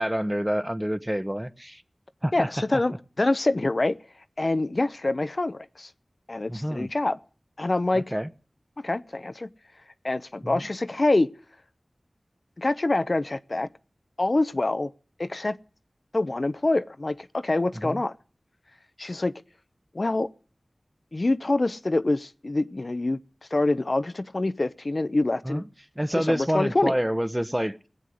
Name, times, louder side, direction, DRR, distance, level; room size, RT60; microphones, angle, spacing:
voice 1, 0.0-1.8 2.2-2.8 6.5-6.9 7.9-8.3 10.4-10.6 17.7-18.0 25.4-25.6 25.9-27.8, equal, 10° right, 1.2 m, -28 dB
voice 2, 2.3-2.9 3.2-4.0 4.4-5.9 6.3-7.2 7.6-8.0 8.8-9.5 10.0-11.3 12.6-13.7 14.2-14.9 15.2-15.6 16.1-18.1 19.0-19.3 19.9-20.3 21.1-23.2 23.5-25.6 26.2-26.9, left 2 dB, 55° left, 0.8 m, -25 dB
19.0 x 8.2 x 9.4 m
wide cardioid pair, 40°, 0 cm